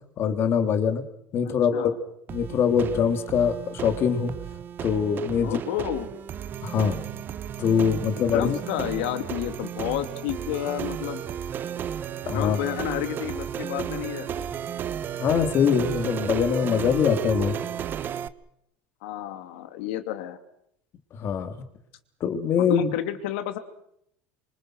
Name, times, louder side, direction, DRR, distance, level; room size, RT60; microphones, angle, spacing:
voice 1, 0.2-1.0 1.3-1.9 2.3-4.3 4.8-5.6 6.6-7.0 7.6-8.9 12.2-12.6 15.2-17.5 21.2-21.5 22.2-22.9, left 7 dB, 45° left, 8 dB, 3.1 m, -23 dB
voice 2, 1.4-2.0 5.4-6.1 8.3-11.2 12.3-14.5 19.0-20.4 22.6-23.6, left 12 dB, 80° left, 10 dB, 2.7 m, -31 dB
sound 1, 2.3-18.3, right 9 dB, 35° right, 1.1 m, -33 dB
26.5 x 25.0 x 6.4 m, 0.75 s
supercardioid pair, 120°, 6 cm